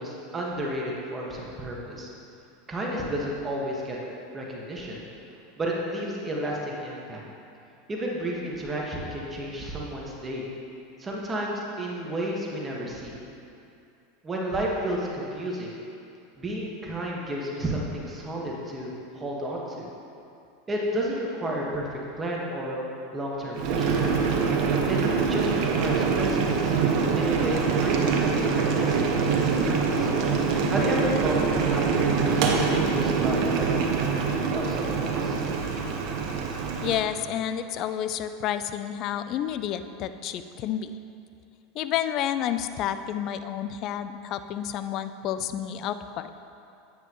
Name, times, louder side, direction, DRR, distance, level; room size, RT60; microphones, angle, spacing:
voice 1, 0.0-2.1 2.7-4.0 4.3-5.0 5.6-7.2 7.9-10.5 11.0-13.1 14.2-15.8 16.4-19.9 20.7-21.9 22.2-22.8 23.1-24.0 24.9-25.0 25.3-26.7 27.2-30.1 30.7-32.6 32.9-34.0 34.5-35.4, right 1 dB, 20° right, -3 dB, 1.6 m, -32 dB
Boiling, 23.5-37.0, right 5 dB, 55° right, 1.2 m, -24 dB
voice 2, 36.8-40.9 41.7-46.3, left 10 dB, 45° left, 11 dB, 0.4 m, -30 dB
9.9 x 9.3 x 3.1 m, 2.6 s
supercardioid pair, 115°, 0 cm